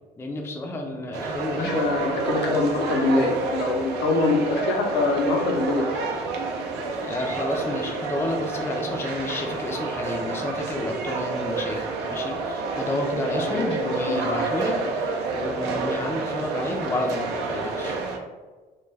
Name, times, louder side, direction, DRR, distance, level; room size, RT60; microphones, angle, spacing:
voice 1, 0.2-1.7 7.0-18.0, left 2 dB, 15° left, 2 dB, 0.3 m, -30 dB
sound 1, 1.1-18.2, right 3 dB, 85° right, 0.4 m, -29 dB
voice 2, 1.6-6.1 13.3-14.3, left 3 dB, 80° left, 1 dB, 0.6 m, -24 dB
2.3 x 2.1 x 3.2 m, 1.3 s
cardioid pair, 110°, 17 cm